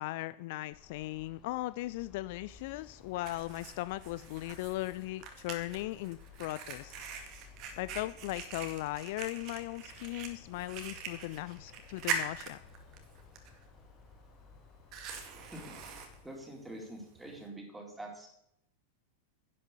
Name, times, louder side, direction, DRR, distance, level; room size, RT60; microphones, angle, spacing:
voice 1, 0.0-6.9 7.8-12.6, left 17 dB, 50° left, 16 dB, 0.4 m, -38 dB
sound 1, 0.7-16.3, left 6 dB, 35° left, 1.3 m, -56 dB
Fire, 2.5-17.5, right 5 dB, 40° right, 2.1 m, -44 dB
voice 2, 15.4-18.3, right 1 dB, 5° right, 0 dB, 4.0 m, -46 dB
11.0 x 9.6 x 6.7 m, 0.76 s
figure-of-eight pair, 90°, 0 cm